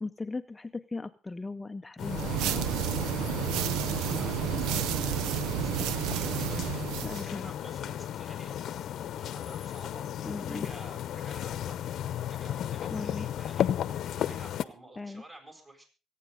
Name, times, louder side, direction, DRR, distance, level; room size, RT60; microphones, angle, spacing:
voice 1, 0.0-2.8 7.0-7.5 10.2-10.7 12.9-13.3 15.0-15.2, left 3 dB, 20° left, 9 dB, 0.6 m, -38 dB
sound 1, 2.0-14.6, left 10 dB, 65° left, 0.8 m, -34 dB
sound 2, 2.0-7.3, right 11 dB, 80° right, 0.6 m, -31 dB
voice 2, 3.7-12.0 12.3-15.8, right 1 dB, 30° right, 3 dB, 7.3 m, -52 dB
24.0 x 9.2 x 3.8 m, 0.34 s
supercardioid pair, 75°, 0 cm